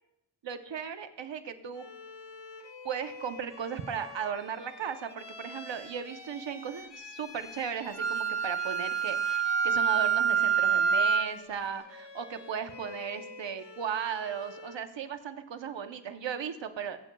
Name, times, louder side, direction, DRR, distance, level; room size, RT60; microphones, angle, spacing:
voice 1, 0.4-1.9 2.8-17.0, right 7 dB, 85° right, 8 dB, 0.9 m, -36 dB
Bowed string instrument, 1.7-14.9, left 3 dB, 75° left, 1.3 m, -47 dB
Wind instrument woodwind instrument, 8.0-11.3, right 7 dB, 35° right, 1.1 m, -26 dB
22.0 x 8.6 x 2.3 m, 0.82 s
wide cardioid pair, 65°, 43 cm